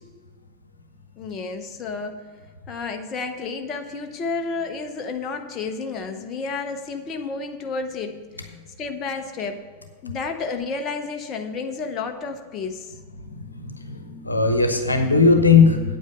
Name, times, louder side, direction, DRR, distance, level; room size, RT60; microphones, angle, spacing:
voice 1, 1.2-2.2 2.7-9.6 10.0-12.9, left 4 dB, 30° left, 5 dB, 0.9 m, -31 dB
voice 2, 13.3-16.0, left 4 dB, 80° left, 6 dB, 1.0 m, -18 dB
8.8 x 8.5 x 5.4 m, 1.5 s
figure-of-eight pair, 90°, 0 cm